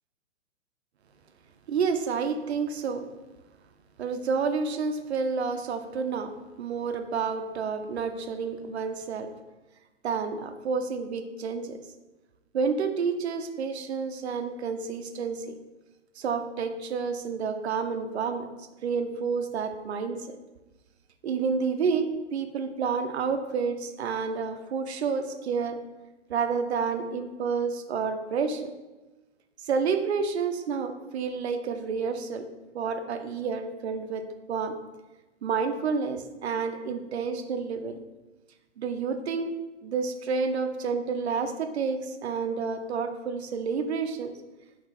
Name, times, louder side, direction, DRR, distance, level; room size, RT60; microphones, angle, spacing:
voice 1, 1.7-3.1 4.0-9.3 10.0-11.8 12.5-15.6 16.2-20.4 21.2-25.8 26.3-28.7 29.6-32.5 32.7-34.8 35.4-38.0 38.8-39.6 39.8-44.3, right 5 dB, 65° right, 8 dB, 0.5 m, -29 dB
4.5 x 2.9 x 3.2 m, 1.1 s
figure-of-eight pair, 120°, 36 cm